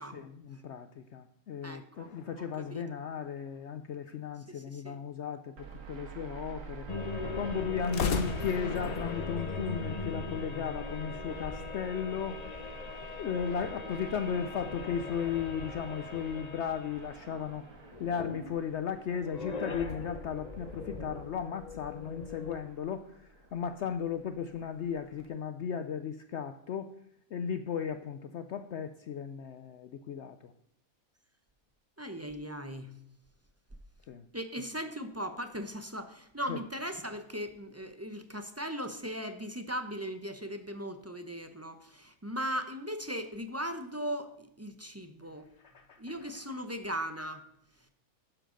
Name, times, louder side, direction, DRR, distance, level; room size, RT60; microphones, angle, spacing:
voice 1, 0.1-6.9 7.2-12.4 13.1-26.9 27.3-30.5 34.1-34.3 36.5-36.6 45.6-46.0, left 7 dB, 65° left, 10 dB, 0.8 m, -36 dB
voice 2, 1.6-2.1 2.4-2.8 4.5-5.0 7.1-7.2 32.0-32.9 34.3-45.5 46.0-47.4, equal, 15° right, 8 dB, 0.5 m, -38 dB
sound 1, 2.0-3.8 7.8-10.9, left 5 dB, 90° left, 1.5 m, -39 dB
sound 2, 5.6-25.3, right 4 dB, 65° right, 1.7 m, -48 dB
sound 3, 6.9-18.6 18.9-22.6, left 4 dB, 35° left, 0.9 m, -40 dB
12.0 x 10.0 x 3.8 m, 0.73 s
omnidirectional pair, 1.5 m